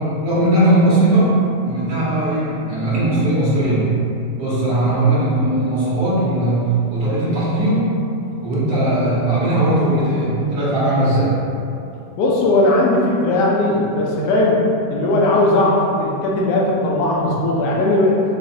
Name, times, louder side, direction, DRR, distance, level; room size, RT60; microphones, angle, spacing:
voice 1, 0.0-1.3 1.6-3.9 4.4-6.6 6.9-7.8 8.4-11.3, right 1 dB, 65° right, -10 dB, 1.4 m, -18 dB
voice 2, 4.6-5.0 12.2-14.6 14.9-18.2, left 2 dB, 80° left, -3 dB, 1.2 m, -18 dB
4.9 x 2.4 x 2.7 m, 2.7 s
omnidirectional pair, 1.9 m